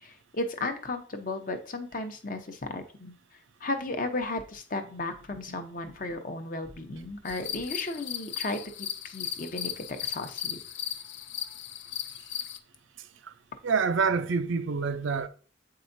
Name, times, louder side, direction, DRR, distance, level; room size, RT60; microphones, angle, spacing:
voice 1, 0.0-3.1 3.6-10.6, left 2 dB, 45° left, 0.8 m, -35 dB
sound 1, 7.3-12.6, left 9 dB, 65° left, 0.5 m, -36 dB
voice 2, 13.6-15.3, right 5 dB, 75° right, 0.5 m, -26 dB
7.8 x 4.8 x 2.6 m
head